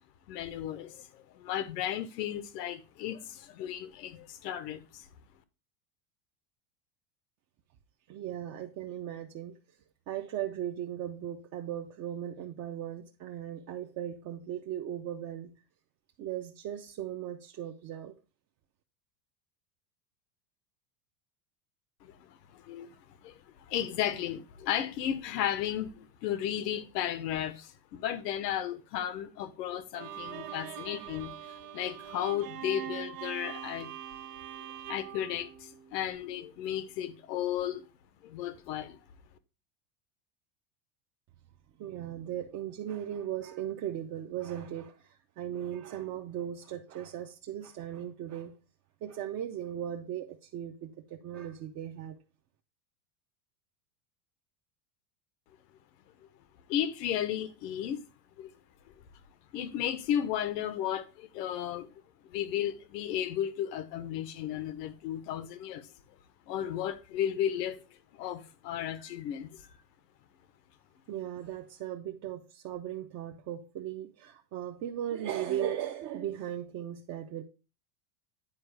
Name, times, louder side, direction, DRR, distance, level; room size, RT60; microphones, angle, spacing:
voice 1, 0.3-5.0 22.0-23.3 23.7-33.9 34.6-37.8 38.2-39.0 56.7-58.0 58.4-58.5 59.5-61.9 62.3-65.9 66.5-67.8 68.1-69.7, left 10 dB, 90° left, 1.0 m, -34 dB
voice 2, 8.1-9.6 10.1-15.5 16.2-18.1 41.8-48.5 49.0-52.2 71.1-77.4, right 10 dB, 35° right, 0.6 m, -37 dB
Bowed string instrument, 29.9-36.2, right 10 dB, 85° right, 1.0 m, -43 dB
9.6 x 4.6 x 3.3 m
supercardioid pair, 140°, 48 cm